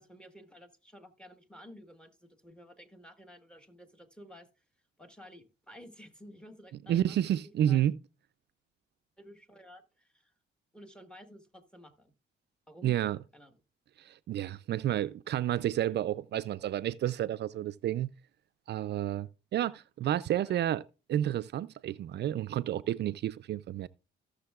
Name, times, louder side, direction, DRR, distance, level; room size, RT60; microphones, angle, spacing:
voice 1, 0.0-4.5 5.0-7.2 7.4-7.8 9.2-10.3 10.7-12.1 12.7-12.9 13.3-13.5 20.4-20.6, equal, 5° left, 1.4 m, -53 dB
voice 2, 6.9-8.0 12.8-13.2 14.0-18.1 18.7-20.8 21.1-23.9, right 11 dB, 60° right, 0.4 m, -30 dB
16.5 x 6.6 x 2.4 m
cardioid pair, 90°, 20 cm